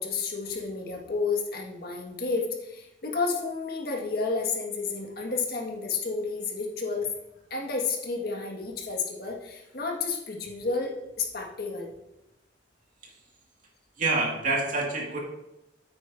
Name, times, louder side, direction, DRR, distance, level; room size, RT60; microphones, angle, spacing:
voice 1, 0.0-7.1 7.5-11.9, left 4 dB, 60° left, 0 dB, 1.7 m, -31 dB
voice 2, 14.0-15.2, right 3 dB, 45° right, -2 dB, 2.0 m, -27 dB
9.1 x 9.0 x 2.7 m, 0.89 s
head